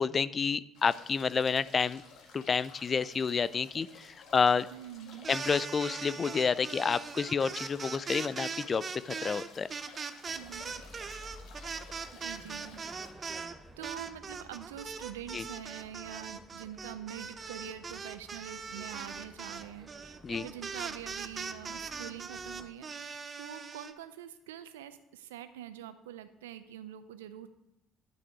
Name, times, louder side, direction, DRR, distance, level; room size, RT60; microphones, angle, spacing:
voice 1, 0.0-2.0 2.3-4.7 5.3-9.7 15.3-15.4 20.2-20.5, left 5 dB, 40° left, 18 dB, 0.4 m, -29 dB
sound 1, 0.7-13.1, left 4 dB, 70° left, 1.7 m, -54 dB
voice 2, 4.7-5.3 10.4-10.8 12.2-12.9 13.2-27.5, right 11 dB, 85° right, 13 dB, 0.6 m, -45 dB
sound 2, 5.1-13.5 13.8-23.9, right 5 dB, 40° right, 0.8 m, -40 dB
sound 3, 10.3-22.7, equal, 20° right, 1.3 m, -54 dB
10.5 x 6.0 x 4.7 m, 0.87 s
hypercardioid pair, 55°, 0 cm